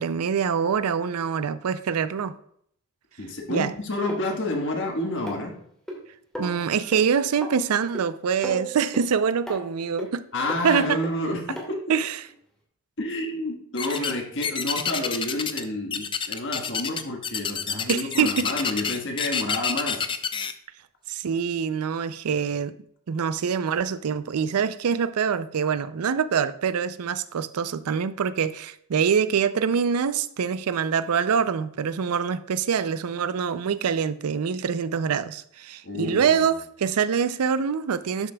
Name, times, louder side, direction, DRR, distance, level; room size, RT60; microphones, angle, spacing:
voice 1, 0.0-2.4 3.5-3.7 6.4-10.2 10.6-11.0 11.9-12.2 17.9-18.4 21.1-22.7 23.1-38.3, right 6 dB, 80° right, 0.4 m, -25 dB
voice 2, 3.2-5.5 10.3-11.8 13.0-20.1 35.8-36.4, left 1 dB, 55° left, 1.4 m, -29 dB
sound 1, 4.1-4.2 5.3-6.0 6.3-6.6 6.9-7.0 7.4-7.5 7.9-8.1 8.4-9.1 9.5-9.6 10.0-10.1 10.5-10.6 11.0-11.1 11.6-11.7 12.3-12.4, equal, ahead, 1.7 m, -34 dB
sound 2, 13.8-14.2 14.4-15.6 15.9-20.5, left 6 dB, 20° left, 0.4 m, -28 dB
12.0 x 6.7 x 2.3 m
head